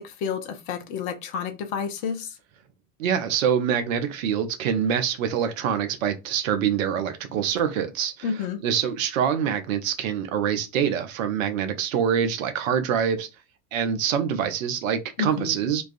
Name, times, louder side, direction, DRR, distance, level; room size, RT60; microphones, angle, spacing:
voice 1, 0.0-2.4 8.2-8.6 15.2-15.6, left 6 dB, 45° left, 0.6 m, -30 dB
voice 2, 3.0-8.3 8.6-13.3 13.7-15.8, right 8 dB, 60° right, 0.6 m, -25 dB
2.3 x 2.3 x 2.4 m
figure-of-eight pair, 70°, 47 cm